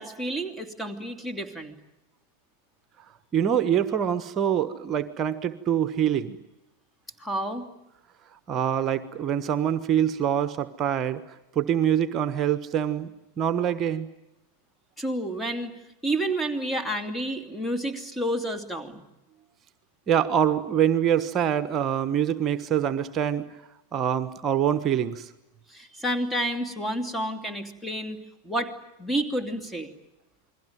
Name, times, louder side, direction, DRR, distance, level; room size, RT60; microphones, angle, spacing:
voice 1, 0.0-1.7 7.2-7.7 15.0-15.8 16.0-19.0 25.7-28.2 28.4-28.7 29.0-29.9, right 1 dB, 5° left, 6 dB, 2.9 m, -30 dB
voice 2, 3.3-6.4 8.5-13.1 13.4-14.1 20.1-23.4 23.9-25.3, right 9 dB, 30° right, 12 dB, 1.3 m, -25 dB
29.0 x 21.5 x 9.4 m, 0.93 s
figure-of-eight pair, 90°, 0 cm